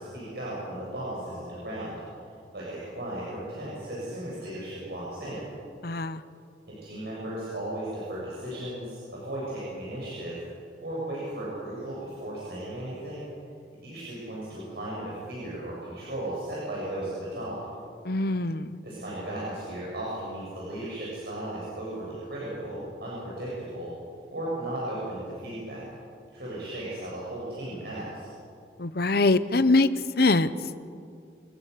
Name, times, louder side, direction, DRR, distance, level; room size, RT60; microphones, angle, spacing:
voice 1, 0.0-2.0 2.5-5.4 6.7-10.4 10.8-13.3 13.8-17.6 18.8-23.9 24.3-25.8 26.3-28.3, right 1 dB, 65° right, -6 dB, 7.5 m, -36 dB
voice 2, 5.8-6.2 18.1-18.8 28.8-29.9 30.2-30.5, left 2 dB, 60° left, 14 dB, 0.9 m, -23 dB
27.5 x 19.5 x 6.8 m, 2.3 s
head